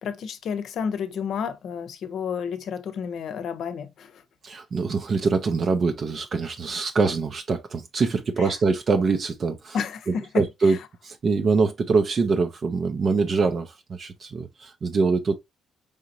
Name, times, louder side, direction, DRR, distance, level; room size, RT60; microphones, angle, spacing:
voice 1, 0.0-4.2 8.4-8.5 9.7-10.8, left 7 dB, 70° left, 0.7 m, -31 dB
voice 2, 4.4-9.8 10.3-10.8 11.0-15.4, right 4 dB, 50° right, 0.6 m, -24 dB
4.9 x 2.9 x 2.6 m
cardioid pair, 90°, 0 cm